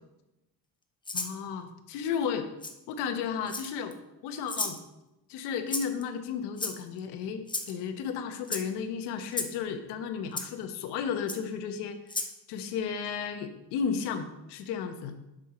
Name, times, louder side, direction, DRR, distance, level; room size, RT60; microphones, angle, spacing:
Rattle (instrument), 1.0-1.3 2.6-2.7 3.5-3.9 4.5-4.8 5.7-6.0 6.6-7.0 7.5-7.7 8.4-8.6 9.3-9.5 10.4-10.5 11.3-11.4 12.1-12.3, left 2 dB, 10° left, 0.9 m, -33 dB
voice 1, 1.1-2.5 2.9-3.9 4.2-4.8 5.3-12.0 12.5-15.2, left 7 dB, 85° left, 8 dB, 1.1 m, -33 dB
7.4 x 6.5 x 4.3 m, 0.92 s
cardioid pair, 100°, 40 cm